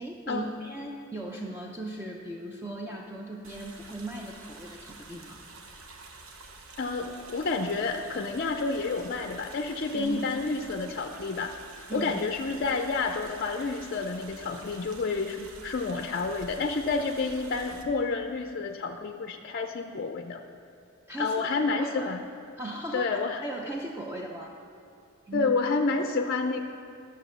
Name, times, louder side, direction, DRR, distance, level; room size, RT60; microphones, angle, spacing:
voice 1, 0.0-5.4 9.9-10.2 11.9-12.2 21.1-21.3 21.8-22.2 22.6-24.6 25.2-25.5, right 1 dB, 10° right, -1 dB, 0.6 m, -37 dB
sound 1, 3.4-17.8, right 3 dB, 70° right, 1.0 m, -48 dB
voice 2, 6.8-11.5 11.9-20.4 21.2-22.2 22.9-23.4 25.3-26.6, left 4 dB, 45° left, 5 dB, 0.5 m, -29 dB
12.5 x 6.5 x 6.8 m, 2.5 s
head